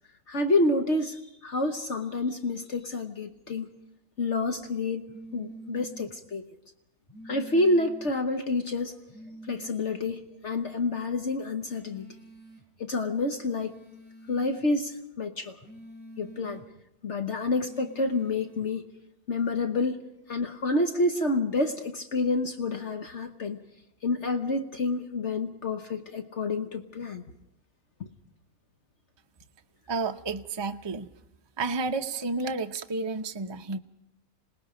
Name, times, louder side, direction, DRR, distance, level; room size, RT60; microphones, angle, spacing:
voice 1, 0.3-3.7 4.2-6.4 7.2-9.0 9.5-12.1 12.8-13.7 14.3-15.6 16.2-16.6 17.0-18.8 19.3-20.0 20.3-23.6 24.0-27.2, left 2 dB, 50° left, 7 dB, 1.4 m, -28 dB
sound 1, 5.1-6.1 7.1-8.1 9.1-10.1 11.6-12.7 13.6-14.7 15.6-16.7 17.6-18.7, right 1 dB, 5° left, 5.6 m, -47 dB
voice 2, 29.9-31.1 31.6-33.8, right 3 dB, 25° right, 6 dB, 0.7 m, -31 dB
27.0 x 19.5 x 5.1 m, 0.84 s
omnidirectional pair, 1.6 m